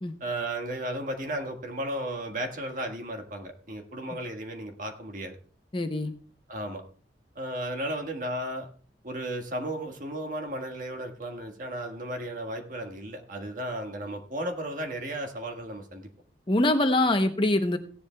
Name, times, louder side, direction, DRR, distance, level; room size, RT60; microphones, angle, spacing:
voice 1, 0.2-5.4 6.5-6.8 7.3-8.7 9.0-16.1, right 1 dB, 50° right, 4 dB, 1.6 m, -34 dB
voice 2, 5.7-6.1 16.5-17.8, left 1 dB, 30° left, 7 dB, 0.8 m, -24 dB
17.0 x 10.5 x 2.3 m, 0.43 s
head